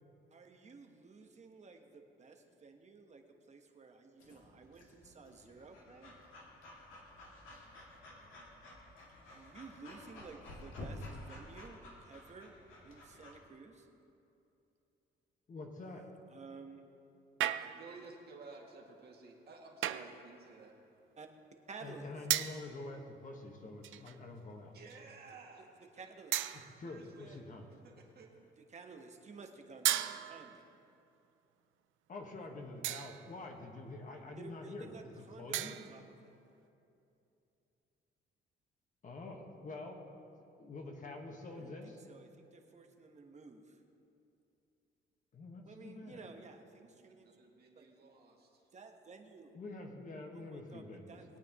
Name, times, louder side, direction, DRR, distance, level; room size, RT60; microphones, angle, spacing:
voice 1, 0.3-6.1 9.3-12.6 12.8-13.9 16.3-16.9 17.5-17.6 21.2-21.3 21.7-22.1 25.6-25.7 25.9-26.3 28.7-30.6 34.4-36.4 41.4-43.8 45.6-47.3 47.7-47.9 48.7-49.6 50.3-51.4, right 4 dB, 35° right, 4 dB, 1.2 m, -53 dB
Breathing / Dog, 4.2-13.3, left 1 dB, 85° left, 2.3 m, -52 dB
voice 2, 15.5-16.0 21.8-24.7 26.8-27.7 32.1-35.8 39.0-40.0 40.6-42.0 45.3-46.2 49.5-51.4, left 2 dB, 40° left, 2 dB, 1.4 m, -47 dB
sound 1, 17.4-18.0 19.8-20.2 22.3-22.7 23.8-24.2 24.9-25.1 26.3-26.9 29.8-30.7 32.8-33.3 35.5-36.1, right 13 dB, 75° right, 0.5 m, -35 dB
voice 3, 17.5-20.7 24.7-25.6 26.0-26.1 26.8-27.5 27.8-28.3 46.9-48.7, right 4 dB, 50° right, -2 dB, 2.1 m, -55 dB
20.5 x 8.9 x 3.0 m, 2.8 s
cardioid pair, 110°, 20 cm